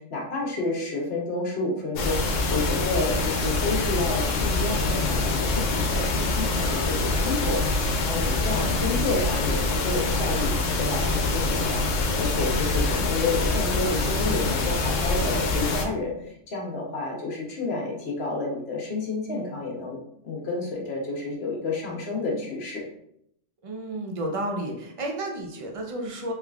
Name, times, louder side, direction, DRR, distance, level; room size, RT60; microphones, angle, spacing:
voice 1, 0.1-2.2 2.5-20.0 20.2-22.8, left 3 dB, 60° left, -1 dB, 1.0 m, -30 dB
sound 1, 2.0-15.9, left 2 dB, 90° left, 0.9 m, -25 dB
voice 2, 23.6-26.3, right 1 dB, 45° right, 2 dB, 0.4 m, -31 dB
3.5 x 3.1 x 2.3 m, 0.72 s
omnidirectional pair, 1.3 m